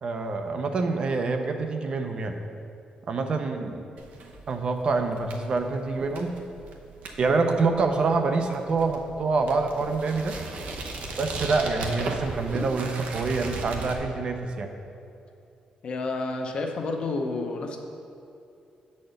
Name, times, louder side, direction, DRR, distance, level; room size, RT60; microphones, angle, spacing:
voice 1, 0.0-2.3 3.1-3.8 4.5-6.3 7.2-10.3 11.2-14.7, right 4 dB, 40° right, 5 dB, 0.5 m, -26 dB
sound 1, 4.0-14.0, right 3 dB, 80° right, 0.8 m, -37 dB
voice 2, 15.8-17.8, left 3 dB, 45° left, 3 dB, 0.6 m, -30 dB
6.7 x 4.2 x 6.4 m, 2.6 s
wide cardioid pair, 170°, 2 cm